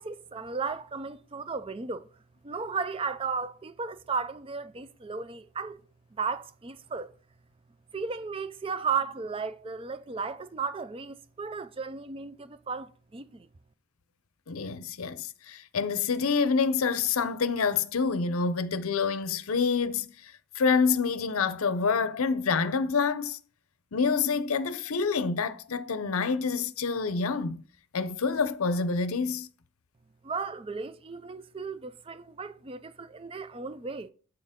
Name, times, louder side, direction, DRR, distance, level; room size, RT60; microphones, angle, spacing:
voice 1, 0.0-2.1 2.4-5.8 6.1-7.1 7.9-13.5 30.2-34.1, right 5 dB, 25° right, 0.4 m, -35 dB
voice 2, 14.5-23.4 23.9-27.6 27.9-29.5, left 5 dB, 80° left, 0.6 m, -27 dB
7.9 x 6.6 x 3.6 m
head